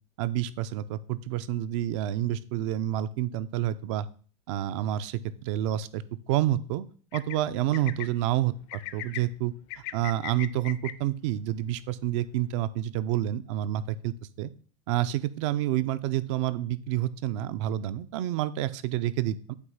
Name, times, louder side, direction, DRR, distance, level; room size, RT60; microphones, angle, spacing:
voice 1, 0.2-4.1 4.5-6.9 7.1-9.5 9.9-14.5 14.9-19.6, right 12 dB, 55° right, 15 dB, 0.4 m, -29 dB
sound 1, 7.1-7.4 7.7-8.1 8.7-9.2 9.7-10.9, left 16 dB, 50° left, 0.5 m, -37 dB
8.1 x 2.9 x 5.5 m, 0.43 s
supercardioid pair, 170°, 18 cm